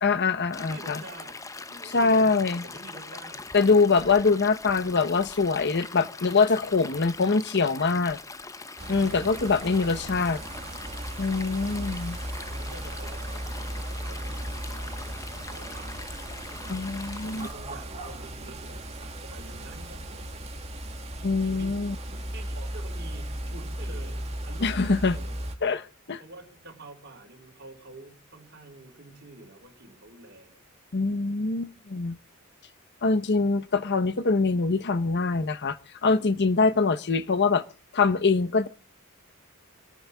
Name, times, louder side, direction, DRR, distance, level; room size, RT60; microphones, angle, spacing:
voice 1, 0.0-1.0 1.9-2.6 3.5-8.2 8.9-10.4 11.2-12.2 16.7-17.5 21.2-21.9 24.6-25.2 25.6-26.2 30.9-32.2 33.0-37.6 37.9-38.7, left 4 dB, 55° left, 0.9 m, -24 dB
Stream, 0.5-17.5, left 3 dB, 15° left, 0.7 m, -42 dB
voice 2, 0.6-3.5 12.5-14.9 15.3-16.2 17.2-20.5 21.4-25.5 26.2-30.6, right 2 dB, 50° right, 4.7 m, -48 dB
sound 1, 8.8-25.6, right 1 dB, 30° right, 2.2 m, -36 dB
29.0 x 13.5 x 2.3 m
head